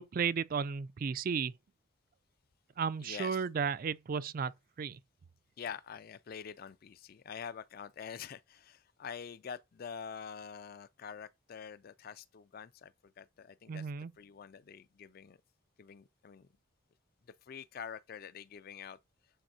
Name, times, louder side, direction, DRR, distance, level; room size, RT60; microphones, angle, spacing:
voice 1, 0.0-1.5 2.8-4.5 4.8-5.0 13.7-14.1, right 6 dB, 45° right, 0.3 m, -34 dB
voice 2, 3.0-3.4 5.6-13.9 14.2-15.4 15.8-16.5 17.5-19.0, left 7 dB, 45° left, 0.4 m, -46 dB
8.9 x 4.2 x 2.7 m
head